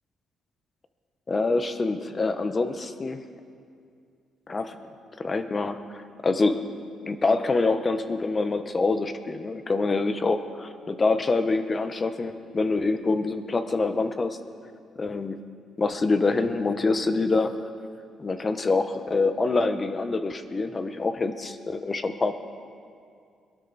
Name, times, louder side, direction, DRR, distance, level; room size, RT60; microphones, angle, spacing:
voice 1, 1.3-3.2 4.5-4.8 5.2-6.6 7.0-14.4 15.0-15.4 15.8-17.6 18.2-22.3, left 3 dB, 30° left, 9 dB, 1.0 m, -25 dB
22.5 x 12.5 x 4.2 m, 2.4 s
cardioid pair, 90°, 0 cm